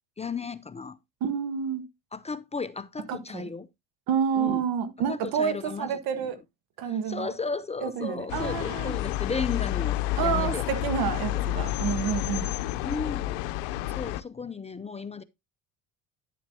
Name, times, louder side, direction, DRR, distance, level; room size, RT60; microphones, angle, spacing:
voice 1, 0.2-1.0 2.1-3.7 4.3-4.6 5.1-6.3 6.8-10.7 11.3-11.5 12.8-13.4 13.6-15.2, left 4 dB, 20° left, 0.5 m, -35 dB
voice 2, 1.2-1.8 3.1-3.5 4.1-6.4 6.8-7.3 7.8-9.0 10.2-12.5, right 7 dB, 70° right, 1.4 m, -29 dB
sound 1, 8.3-14.2, left 16 dB, 85° left, 0.7 m, -30 dB
10.0 x 7.2 x 2.7 m
supercardioid pair, 75°, 37 cm